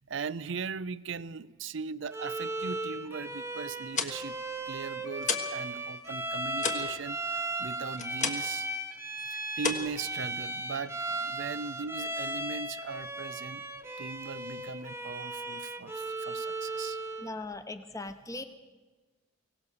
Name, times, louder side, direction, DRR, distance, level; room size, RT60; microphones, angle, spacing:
voice 1, 0.0-4.4 4.7-8.7 9.2-13.6 14.0-17.0, right 5 dB, 65° right, 18 dB, 0.6 m, -39 dB
Bowed string instrument, 2.1-17.3, right 2 dB, 10° right, 1.1 m, -36 dB
sound 1, 3.7-5.6 5.9-8.6 8.9-9.2 9.6-10.7, left 5 dB, 35° left, 1.4 m, -34 dB
voice 2, 17.2-18.4, left 2 dB, 15° left, 9 dB, 1.1 m, -39 dB
23.5 x 17.5 x 6.8 m, 1.3 s
head